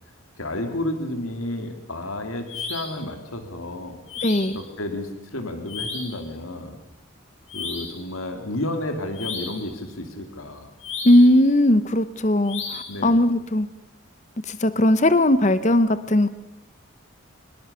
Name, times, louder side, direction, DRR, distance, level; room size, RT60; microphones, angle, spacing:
voice 1, 0.4-4.0 4.5-6.8 7.5-10.7 12.9-13.2, left 1 dB, 85° left, 6 dB, 2.8 m, -31 dB
sound 1, 2.5-3.0 4.1-4.6 5.7-6.2 7.5-8.1 9.1-9.7 10.8-11.4 12.5-13.0, left 5 dB, 70° left, 6.8 m, -33 dB
voice 2, 4.2-4.6 11.0-13.7 14.5-16.3, left 1 dB, 35° left, 13 dB, 0.9 m, -18 dB
24.0 x 21.0 x 6.8 m, 0.84 s
head